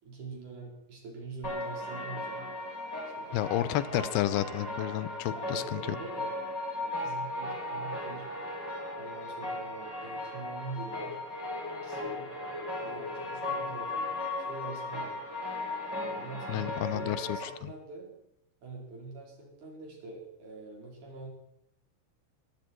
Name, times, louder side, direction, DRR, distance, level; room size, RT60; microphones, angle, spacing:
voice 1, 0.0-2.5 3.0-3.9 5.3-6.3 6.8-8.3 8.9-11.2 11.7-15.1 16.1-18.2 18.6-21.3, right 3 dB, 55° right, -1 dB, 5.9 m, -44 dB
sound 1, 1.4-17.4, left 2 dB, 5° left, 7.2 m, -37 dB
voice 2, 3.3-5.8 16.5-17.5, left 14 dB, 90° left, 16 dB, 2.8 m, -31 dB
23.5 x 13.5 x 4.6 m, 0.80 s
omnidirectional pair, 4.4 m